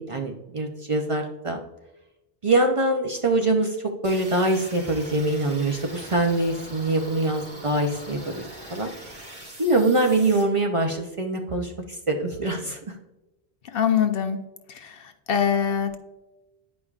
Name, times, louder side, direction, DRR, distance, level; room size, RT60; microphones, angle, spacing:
voice 1, 0.0-1.6 2.4-8.4 8.7-8.9 9.6-13.0, right 2 dB, 40° right, 3 dB, 0.6 m, -24 dB
sound 1, 4.0-10.4, right 1 dB, 65° right, 2.2 m, -42 dB
voice 2, 13.6-14.4 14.7-16.0, left 8 dB, 70° left, 8 dB, 0.8 m, -24 dB
9.8 x 5.2 x 2.4 m, 0.98 s
omnidirectional pair, 1.0 m